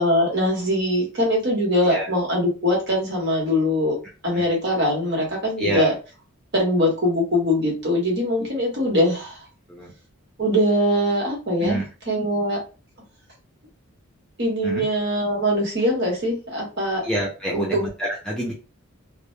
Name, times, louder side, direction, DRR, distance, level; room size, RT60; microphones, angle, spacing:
voice 1, 0.0-4.0 4.2-5.9 6.5-9.4 10.4-11.8 12.1-12.6 14.4-17.1 17.5-17.8, equal, 50° right, -2 dB, 1.1 m, -22 dB
voice 2, 5.6-5.9 9.7-9.9 11.6-11.8 14.6-14.8 17.0-18.5, right 1 dB, 5° left, -5 dB, 0.5 m, -27 dB
2.2 x 2.1 x 3.1 m, 0.33 s
head